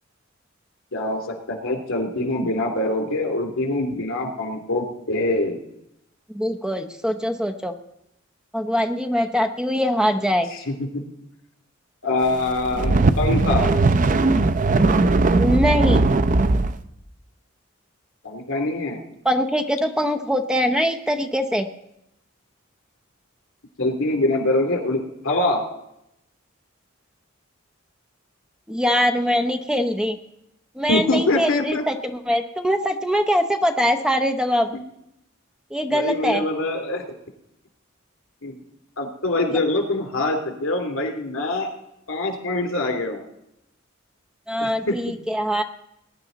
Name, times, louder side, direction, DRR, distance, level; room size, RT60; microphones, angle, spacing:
voice 1, 0.9-5.6 10.5-10.9 12.0-13.7 18.2-19.0 23.8-25.6 30.9-31.8 34.7-34.8 35.9-37.0 38.4-38.6 39.0-41.7 42.1-43.2 44.6-45.0, left 2 dB, 85° left, 3 dB, 2.9 m, -24 dB
voice 2, 6.3-7.7 8.5-10.5 15.3-16.1 19.2-21.7 28.7-30.2 30.8-34.8 35.7-36.4 44.5-45.6, equal, 5° right, 7 dB, 0.7 m, -22 dB
sound 1, 12.5-16.7, right 3 dB, 40° right, 0.6 m, -18 dB
20.5 x 10.5 x 4.0 m, 0.81 s
head